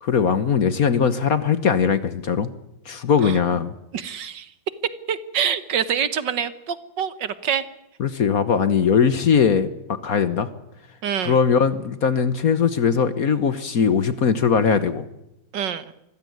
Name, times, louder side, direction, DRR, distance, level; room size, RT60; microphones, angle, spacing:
voice 1, 0.0-2.5 2.8-3.7 8.0-9.7 10.0-10.5 11.2-15.0, left 6 dB, 50° left, 13 dB, 1.4 m, -20 dB
voice 2, 3.9-4.5 5.1-7.6 11.0-11.4 15.5-15.8, right 8 dB, 65° right, 14 dB, 1.8 m, -26 dB
25.5 x 16.0 x 9.4 m, 0.86 s
omnidirectional pair, 2.2 m